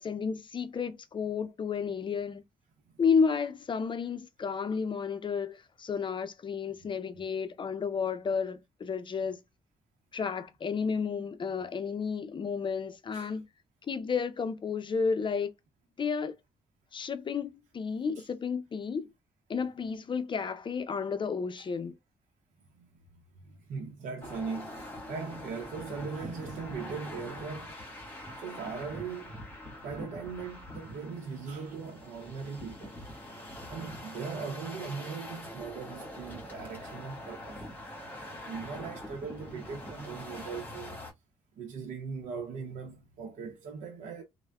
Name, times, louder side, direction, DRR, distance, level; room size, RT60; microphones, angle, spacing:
voice 1, 0.0-2.4 3.0-9.4 10.1-13.5 13.9-15.5 16.0-16.3 16.9-19.1 19.5-22.0, left 5 dB, 40° left, 0.5 m, -32 dB
voice 2, 23.4-27.7 28.4-29.4 29.8-33.0 33.7-37.7 38.2-41.0 41.6-44.2, right 5 dB, 80° right, 0.7 m, -39 dB
sound 1, 24.2-41.1, left 1 dB, 15° left, 1.3 m, -44 dB
3.3 x 2.1 x 2.3 m
supercardioid pair, 60°, 13 cm